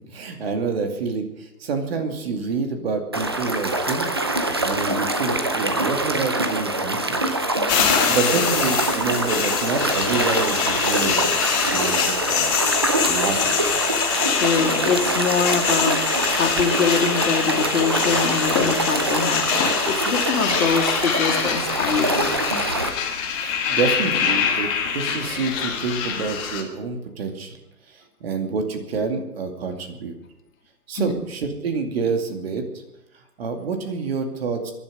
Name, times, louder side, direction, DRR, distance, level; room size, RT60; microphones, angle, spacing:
voice 1, 0.1-7.4 8.0-12.6 13.0-13.7 23.3-27.6 27.9-30.2 30.9-32.6 33.4-34.7, right 4 dB, 40° right, 5 dB, 2.4 m, -28 dB
sound 1, 3.1-22.9, right 2 dB, 15° right, 0.5 m, -24 dB
sound 2, 7.7-26.6, left 7 dB, 15° left, 1.8 m, -24 dB
voice 2, 14.3-16.0 16.4-19.5 19.8-22.4 30.9-31.1, left 6 dB, 55° left, 1 dB, 2.9 m, -24 dB
22.5 x 11.0 x 5.2 m, 0.90 s
hypercardioid pair, 150°, 47 cm